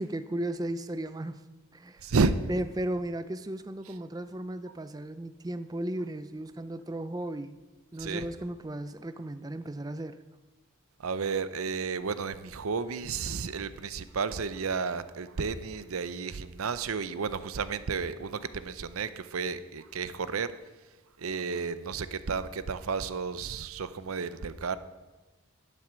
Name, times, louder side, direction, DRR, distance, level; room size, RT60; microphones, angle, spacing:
voice 1, 0.0-1.4 1.7-2.1 2.5-7.6 7.9-10.2, right 1 dB, 15° right, 11 dB, 0.4 m, -35 dB
voice 2, 2.0-2.5 8.0-8.3 11.0-20.5 21.2-24.8, right 5 dB, 85° right, 13 dB, 0.6 m, -32 dB
11.0 x 7.6 x 6.2 m, 1.2 s
head